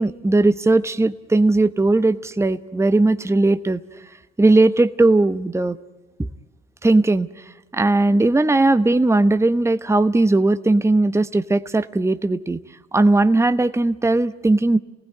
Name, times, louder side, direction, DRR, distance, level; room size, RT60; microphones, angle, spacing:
voice 1, 0.0-3.8 4.4-5.8 6.8-7.3 7.7-12.6 12.9-14.8, right 2 dB, 10° right, 11 dB, 1.0 m, -18 dB
29.0 x 19.0 x 9.6 m, 1.1 s
hypercardioid pair, 60°, 33 cm